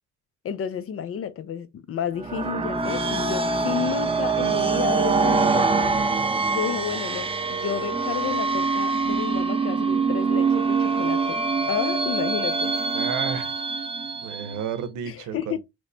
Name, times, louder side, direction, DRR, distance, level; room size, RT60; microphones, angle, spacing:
voice 1, 0.4-5.9 6.5-11.4 11.7-12.7 15.1-15.6, left 8 dB, 50° left, 0.5 m, -31 dB
sound 1, 2.2-14.7, right 4 dB, 20° right, 0.4 m, -24 dB
voice 2, 12.9-13.5 14.2-15.6, right 8 dB, 80° right, 0.7 m, -32 dB
3.0 x 2.1 x 3.8 m
cardioid pair, 90°, 30 cm